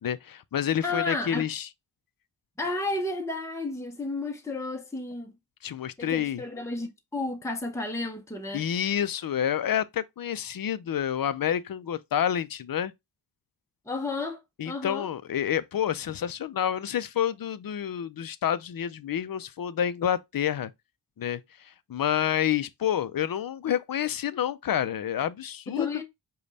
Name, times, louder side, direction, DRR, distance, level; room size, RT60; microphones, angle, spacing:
voice 1, 0.0-1.7 5.6-6.4 8.5-12.9 14.6-20.7 21.2-26.0, left 9 dB, 55° left, 0.5 m, -29 dB
voice 2, 0.8-1.4 2.6-5.3 6.0-8.6 13.9-15.1 25.7-26.0, left 2 dB, 5° left, 0.7 m, -32 dB
5.2 x 2.3 x 4.0 m
wide cardioid pair, 75°, 43 cm